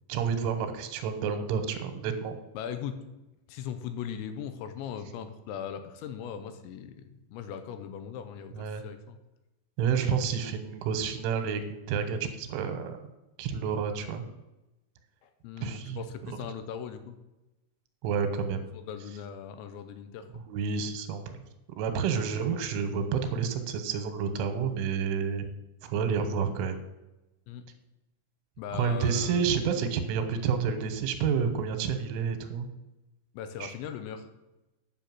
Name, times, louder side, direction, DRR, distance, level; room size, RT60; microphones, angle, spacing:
voice 1, 0.1-2.4 8.5-8.8 9.8-13.0 13.4-14.2 15.6-16.4 18.0-18.6 20.3-21.4 21.8-25.5 25.8-26.8 28.7-32.7 33.6-33.7, right 6 dB, 85° right, 8 dB, 3.5 m, -29 dB
voice 2, 2.5-3.0 3.5-9.2 15.2-17.1 18.7-20.3 22.1-22.2 27.5-27.7 28.6-29.4 33.3-34.3, left 8 dB, 80° left, 9 dB, 3.0 m, -39 dB
10.0 x 5.9 x 7.5 m, 0.99 s
omnidirectional pair, 5.5 m